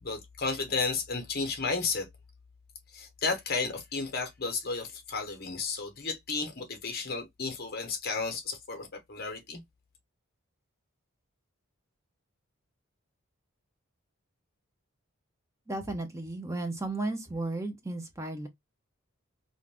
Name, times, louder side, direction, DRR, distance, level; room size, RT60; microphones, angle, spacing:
voice 1, 0.0-2.1 2.9-9.6, left 4 dB, 45° left, 0.9 m, -33 dB
voice 2, 15.7-18.5, right 2 dB, 15° right, 0.5 m, -34 dB
2.5 x 2.5 x 3.3 m
head